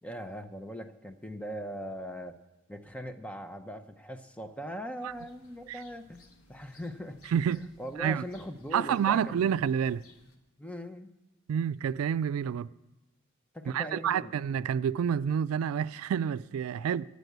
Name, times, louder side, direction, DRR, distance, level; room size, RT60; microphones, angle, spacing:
voice 1, 0.0-2.4 2.7-9.3 10.6-11.2 13.5-14.4 16.7-17.0, equal, 5° left, 0.6 m, -41 dB
sound 1, 5.0-10.4, left 2 dB, 85° left, 1.3 m, -61 dB
voice 2, 7.3-7.6 8.0-8.2 8.7-10.0 11.5-12.7 13.7-17.1, right 8 dB, 85° right, 0.3 m, -28 dB
10.5 x 8.2 x 8.0 m
head